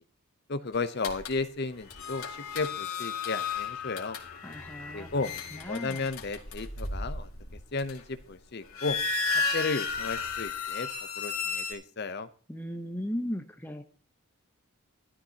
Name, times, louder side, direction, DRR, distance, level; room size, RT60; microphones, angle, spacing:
voice 1, 0.5-4.2 4.9-5.3 5.7-7.3 7.7-9.0 9.5-10.9 11.2-12.3, left 3 dB, 45° left, 12 dB, 0.7 m, -33 dB
sound 1, 1.0-1.4 1.9-8.2 8.6-11.7, left 4 dB, 75° left, 2.1 m, -34 dB
voice 2, 4.4-5.1 5.5-6.0 12.5-13.8, equal, 10° left, 5 dB, 0.8 m, -36 dB
13.0 x 12.5 x 2.8 m, 0.44 s
head